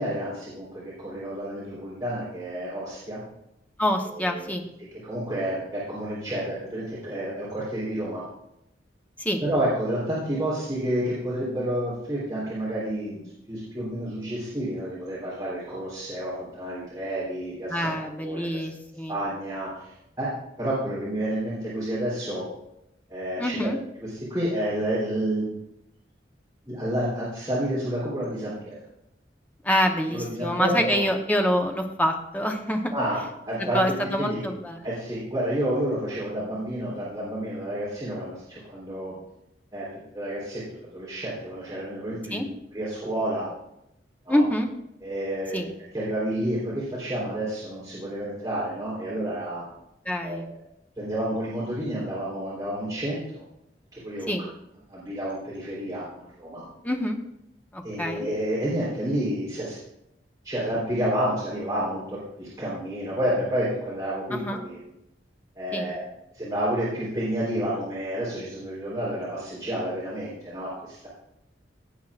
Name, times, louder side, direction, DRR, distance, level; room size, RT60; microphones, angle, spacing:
voice 1, 0.0-3.2 4.2-4.5 5.0-8.2 9.4-18.7 19.1-19.9 20.2-20.3 20.6-22.4 23.1-23.7 24.0-25.5 26.7-28.8 30.1-31.0 32.9-33.8 34.2-34.4 34.8-39.2 39.7-39.9 40.1-42.4 42.7-43.5 44.3-44.4 45.0-45.7 45.9-49.6 50.2-50.6 51.0-53.4 53.9-54.3 54.9-56.6 57.8-59.8 60.4-64.8 65.6-66.0 66.3-71.1, right 1 dB, 20° right, -9 dB, 3.6 m, -30 dB
voice 2, 3.8-4.6 9.2-9.4 17.7-19.2 23.4-23.8 29.6-32.9 33.6-34.8 42.3-42.5 44.3-44.7 45.5-45.7 50.0-50.5 54.3-54.4 56.8-57.2 57.7-58.3 64.3-64.6 65.7-65.9, equal, 10° left, 2 dB, 1.0 m, -26 dB
17.0 x 8.3 x 2.5 m, 0.83 s
head